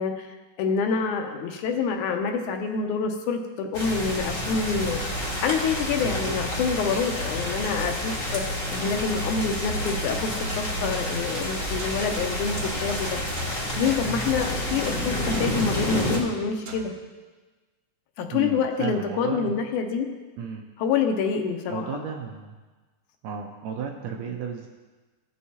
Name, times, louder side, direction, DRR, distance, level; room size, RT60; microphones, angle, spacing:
voice 1, 0.0-5.0 5.4-13.2 13.8-16.9 18.2-20.1 20.8-22.0, left 5 dB, 85° left, 4 dB, 2.1 m, -27 dB
sound 1, 3.7-16.2, left 1 dB, 50° left, 0.6 m, -29 dB
voice 2, 6.0-6.4 18.3-19.6 20.4-20.7 21.7-22.5 23.2-24.7, right 6 dB, 75° right, 2 dB, 1.6 m, -33 dB
sound 2, 10.1-17.0, right 2 dB, 60° right, 2.0 m, -42 dB
15.5 x 6.4 x 2.8 m, 1.3 s
omnidirectional pair, 3.6 m